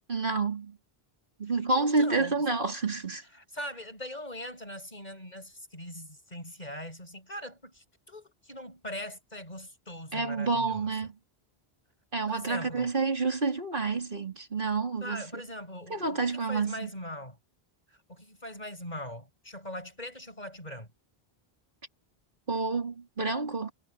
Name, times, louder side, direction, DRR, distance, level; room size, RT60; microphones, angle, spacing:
voice 1, 0.1-0.8 1.4-3.2 10.1-11.1 12.1-15.2 15.9-16.9 22.5-23.7, right 3 dB, 55° right, 3.3 m, -29 dB
voice 2, 1.7-2.4 3.3-10.9 12.3-12.9 15.0-17.4 17.9-20.9, left 1 dB, 45° left, 8.1 m, -41 dB
omnidirectional pair, 1.0 m